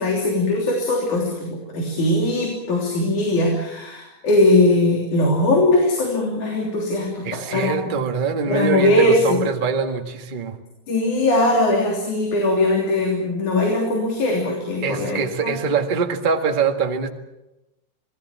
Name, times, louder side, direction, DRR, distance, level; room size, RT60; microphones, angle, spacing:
voice 1, 0.0-7.9 8.5-9.4 10.9-15.6, left 2 dB, 75° left, 0 dB, 4.8 m, -20 dB
voice 2, 7.2-10.6 14.8-17.1, right 5 dB, 25° right, 4 dB, 1.2 m, -23 dB
27.5 x 19.0 x 7.4 m, 0.96 s
omnidirectional pair, 3.5 m